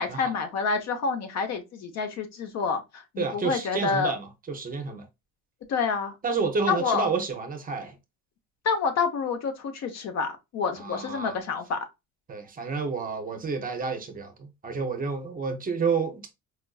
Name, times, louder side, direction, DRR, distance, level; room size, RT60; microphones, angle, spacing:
voice 1, 0.0-4.1 5.7-6.1 6.7-7.1 8.6-11.8, left 5 dB, 55° left, 0.8 m, -28 dB
voice 2, 3.2-5.0 6.2-7.9 10.8-11.4 12.3-16.2, right 5 dB, 30° right, 0.6 m, -30 dB
4.4 x 2.5 x 2.3 m
cardioid pair, 155°, 31 cm